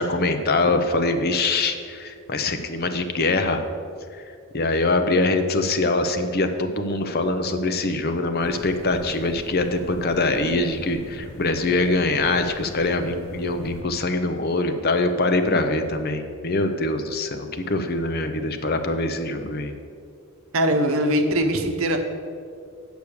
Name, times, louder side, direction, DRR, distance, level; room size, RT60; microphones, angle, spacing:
voice 1, 0.0-3.6 4.5-19.7, left 2 dB, 45° left, 7 dB, 0.7 m, -23 dB
sound 1, 8.4-13.8, left 1 dB, 70° left, 1.1 m, -41 dB
voice 2, 20.5-22.0, right 1 dB, 65° right, 5 dB, 0.9 m, -21 dB
8.3 x 6.2 x 6.8 m, 2.3 s
head